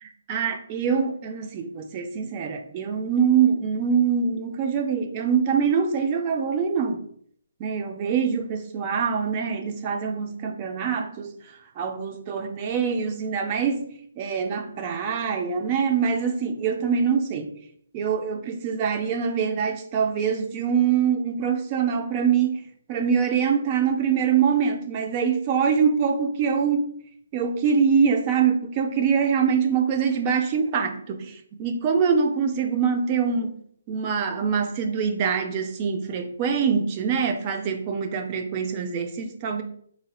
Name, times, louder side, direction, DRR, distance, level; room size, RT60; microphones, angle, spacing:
voice 1, 0.0-7.0 7.6-11.3 11.8-17.5 17.9-22.6 22.9-26.9 27.3-33.6 33.9-39.6, right 6 dB, 25° right, 5 dB, 0.4 m, -24 dB
3.9 x 2.8 x 2.3 m, 0.63 s
hypercardioid pair, 155°, 0 cm